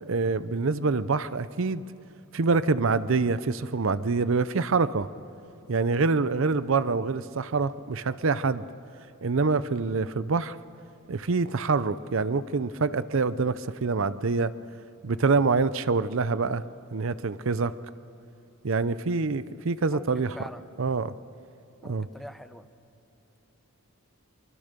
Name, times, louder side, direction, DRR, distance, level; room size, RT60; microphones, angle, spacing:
voice 1, 0.0-1.8 2.3-5.1 5.7-8.6 9.2-10.6 11.1-14.5 15.0-16.6 16.9-17.7 18.6-20.3 20.8-21.1 21.8-22.1, right 4 dB, 65° right, 15 dB, 0.6 m, -26 dB
voice 2, 19.9-20.7 21.8-22.7, equal, ahead, 10 dB, 0.7 m, -43 dB
24.0 x 23.0 x 6.8 m, 2.9 s
head